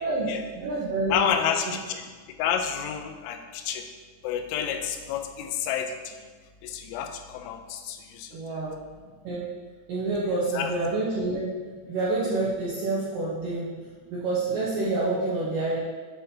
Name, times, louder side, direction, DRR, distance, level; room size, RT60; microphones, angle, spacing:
voice 1, 0.0-0.4 1.1-2.1 2.4-3.8 4.2-6.1 6.6-8.6 10.5-10.7, left 8 dB, 90° left, 6 dB, 3.0 m, -30 dB
voice 2, 0.6-1.3 8.3-8.8 9.2-9.5 9.9-11.5 11.9-13.7 14.1-15.8, right 2 dB, 90° right, -7 dB, 1.9 m, -27 dB
8.0 x 5.6 x 2.7 m, 1.5 s
omnidirectional pair, 5.3 m